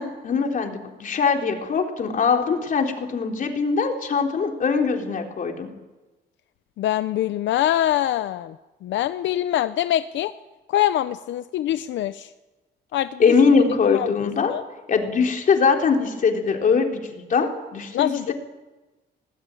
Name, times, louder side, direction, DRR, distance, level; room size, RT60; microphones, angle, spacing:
voice 1, 0.0-5.7 13.2-14.5 14.9-18.3, left 5 dB, 45° left, 3 dB, 3.8 m, -22 dB
voice 2, 6.8-8.6 8.8-10.3 10.7-12.3 12.9-13.2 13.9-14.6 17.9-18.3, left 12 dB, 85° left, 12 dB, 0.7 m, -24 dB
26.5 x 19.0 x 9.1 m, 1.1 s
cardioid pair, 140°, 19 cm